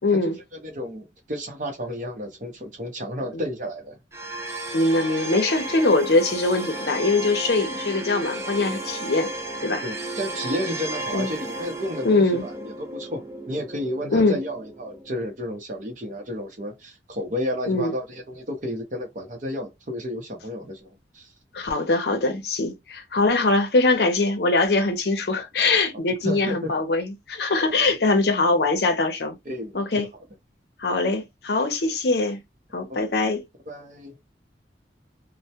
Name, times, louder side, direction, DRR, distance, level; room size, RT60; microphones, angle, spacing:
voice 1, 0.0-0.4 3.3-3.4 4.7-9.3 9.6-9.8 11.1-11.3 12.0-12.4 14.1-14.4 17.7-17.9 21.5-29.4 29.7-30.1 30.8-32.4 32.7-33.4, left 3 dB, 60° left, 0.6 m, -22 dB
voice 2, 0.6-4.0 9.8-21.3 26.2-26.8 28.0-28.2 29.4-30.1 32.9-33.0 33.7-34.2, equal, 45° right, 0.7 m, -32 dB
sound 1, 4.1-15.2, right 1 dB, 15° right, 0.3 m, -33 dB
2.2 x 2.1 x 2.7 m
head